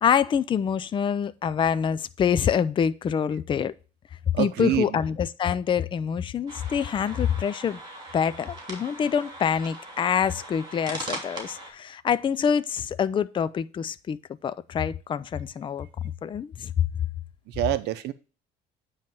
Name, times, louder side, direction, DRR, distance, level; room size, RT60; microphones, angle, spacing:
voice 1, 0.0-3.7 4.4-7.8 8.1-15.9 16.2-16.7, left 7 dB, 30° left, 0.4 m, -26 dB
voice 2, 4.3-4.9 17.6-18.1, right 14 dB, 75° right, 0.6 m, -26 dB
sound 1, 6.5-11.7, right 1 dB, 25° right, 2.9 m, -40 dB
9.1 x 3.2 x 5.8 m
cardioid pair, 110°, 17 cm